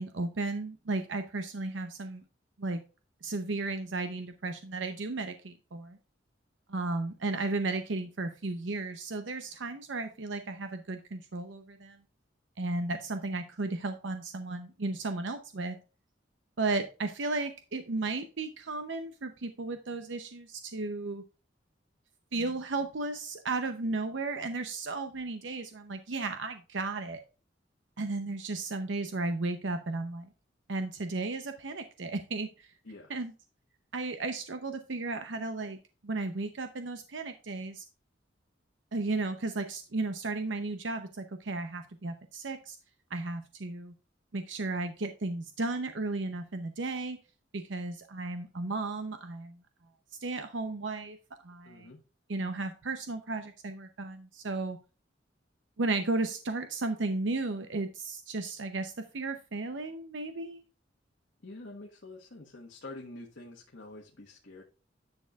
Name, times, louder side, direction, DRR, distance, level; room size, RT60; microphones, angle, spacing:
voice 1, 0.0-2.2 2.6-2.8 3.2-6.0 6.7-12.0 12.6-15.8 16.6-21.2 22.3-27.2 28.0-30.3 30.7-32.7 33.1-33.3 33.9-35.8 36.0-37.8 38.9-42.8 43.1-43.9 44.3-47.2 47.5-49.6 50.2-51.2 51.4-51.9 52.3-54.8 55.8-60.6, right 3 dB, 70° right, 8 dB, 0.7 m, -34 dB
voice 2, 51.6-52.0 61.4-64.6, left 2 dB, 70° left, -1 dB, 1.4 m, -47 dB
10.5 x 6.5 x 2.4 m, 0.33 s
head